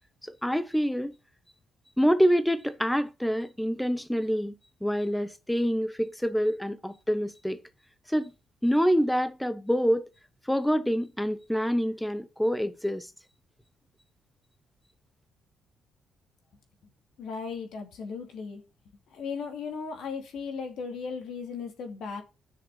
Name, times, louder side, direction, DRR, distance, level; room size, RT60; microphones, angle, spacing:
voice 1, 0.2-1.1 2.0-4.5 4.8-7.6 8.1-8.3 8.6-10.1 10.5-13.1, equal, 5° left, 0.8 m, -26 dB
voice 2, 17.2-18.6 19.1-22.2, left 5 dB, 75° left, 2.7 m, -36 dB
7.4 x 6.5 x 6.0 m
cardioid pair, 90°, 0 cm